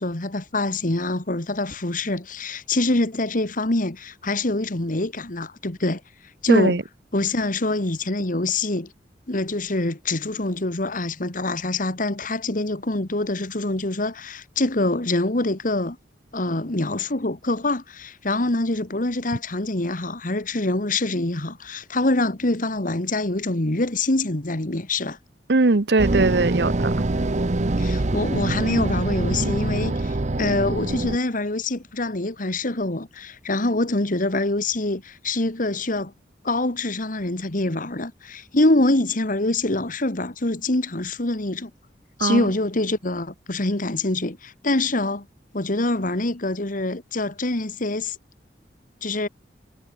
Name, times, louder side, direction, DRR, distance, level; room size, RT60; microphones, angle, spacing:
voice 1, 0.0-6.0 6.4-6.8 7.1-8.9 9.3-16.0 16.3-25.2 27.8-36.1 36.4-41.7 42.2-45.3 45.5-48.2 49.0-49.3, left 2 dB, 50° left, 2.0 m, -25 dB
voice 2, 6.5-6.8 25.5-26.9 42.2-42.5, right 3 dB, 70° right, 0.9 m, -20 dB
sound 1, 26.0-31.2, right 2 dB, 45° right, 0.9 m, -24 dB
head